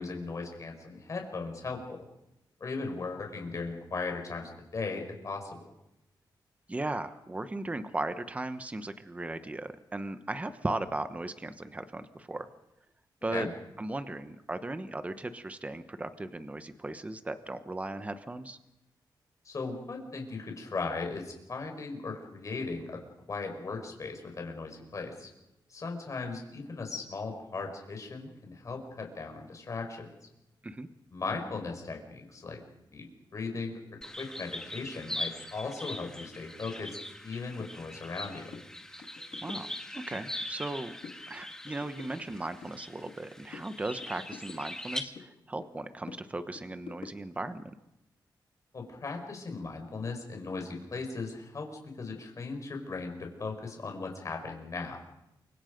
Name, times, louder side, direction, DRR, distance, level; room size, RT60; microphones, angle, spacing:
voice 1, 0.0-2.0 2.6-5.6 13.3-13.5 19.5-25.3 25.7-30.1 31.1-32.6 32.9-33.1 33.3-33.8 34.2-37.0 37.2-38.5 48.7-55.0, left 4 dB, 40° left, 3 dB, 5.3 m, -37 dB
voice 2, 6.7-12.5 13.2-13.5 13.8-18.6 30.6-30.9 39.4-41.0 41.3-47.7, right 2 dB, 15° right, 10 dB, 1.1 m, -37 dB
sound 1, 34.0-45.0, left 1 dB, 5° left, 1.7 m, -41 dB
sound 2, 37.6-37.7 38.1-38.2 38.5-38.7 39.0-40.3 40.6-41.2 41.5-43.3 43.5-45.3 45.6-47.5, left 6 dB, 85° left, 2.4 m, -49 dB
28.5 x 25.5 x 5.3 m, 0.90 s
wide cardioid pair, 145°, 8 cm